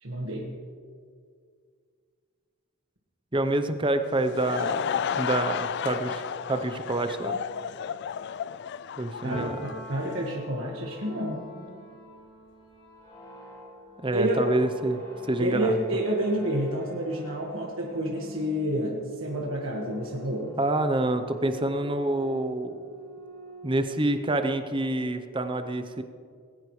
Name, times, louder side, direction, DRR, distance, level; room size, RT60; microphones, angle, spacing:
voice 1, 0.0-0.5 9.2-11.5 14.1-14.5 15.4-20.6, right 1 dB, 60° right, -2 dB, 1.6 m, -29 dB
voice 2, 3.3-4.9 5.2-6.2 6.5-7.4 9.0-9.6 11.6-11.9 14.0-15.8 20.6-22.8 23.6-26.0, right 2 dB, 20° right, 8 dB, 0.7 m, -27 dB
Laughter / Crowd, 4.0-10.3, left 7 dB, 50° left, 0.3 m, -32 dB
Piano, 9.3-16.9 17.3-18.8, left 1 dB, 85° left, 2.5 m, -48 dB
sound 1, 10.8-24.5, right 2 dB, 20° left, 3.3 m, -46 dB
20.0 x 16.5 x 3.2 m, 2.1 s
head